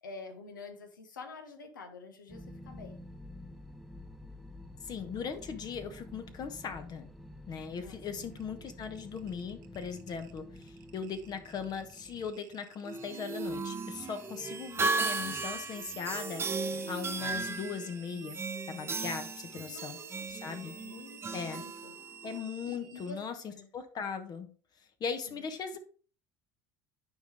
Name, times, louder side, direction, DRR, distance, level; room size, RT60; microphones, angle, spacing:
voice 1, 0.0-3.0 7.8-8.3 8.6-8.8 19.5-20.3 20.7-22.0 22.6-23.2 23.5-23.7 25.3-25.5, left 3 dB, 80° left, 6 dB, 1.2 m, -48 dB
sound 1, 2.3-12.3, left 1 dB, ahead, 0.8 m, -49 dB
voice 2, 4.8-7.1 7.5-18.4 18.7-20.0 20.3-20.7 21.3-21.6 22.2-24.5 24.8-25.8, left 6 dB, 40° left, 8 dB, 1.0 m, -39 dB
sound 2, 8.3-23.2, right 7 dB, 70° right, 0.9 m, -54 dB
sound 3, 12.8-22.4, right 4 dB, 25° right, 0.8 m, -36 dB
9.4 x 5.2 x 3.4 m, 0.39 s
figure-of-eight pair, 65°, 10 cm